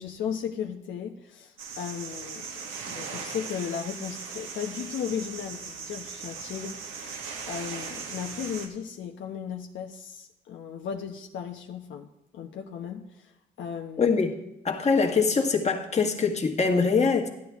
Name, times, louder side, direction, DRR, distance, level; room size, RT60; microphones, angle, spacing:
voice 1, 0.0-12.1 12.3-13.3 13.6-14.1, left 8 dB, 70° left, 2 dB, 0.9 m, -36 dB
sound 1, 1.6-8.7, right 5 dB, 90° right, 1.6 m, -39 dB
voice 2, 14.0-14.4 14.6-17.3, left 5 dB, 35° left, 2 dB, 1.8 m, -23 dB
12.5 x 11.0 x 3.6 m, 0.92 s
cardioid pair, 90°, 20 cm